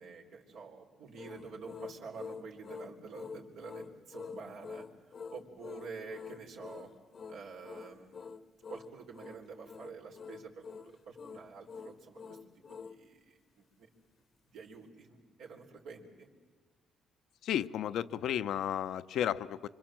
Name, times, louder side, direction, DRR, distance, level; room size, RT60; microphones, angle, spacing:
voice 1, 0.0-4.9 5.3-6.9 7.3-8.1 8.7-12.4 12.7-13.9 14.5-16.3, right 4 dB, 85° right, 0 dB, 3.6 m, -48 dB
sound 1, 1.1-13.0, left 5 dB, 45° left, 0.9 m, -47 dB
voice 2, 17.4-19.7, left 10 dB, 75° left, 12 dB, 0.7 m, -33 dB
26.0 x 25.0 x 7.5 m, 1.4 s
cardioid pair, 90°, 0 cm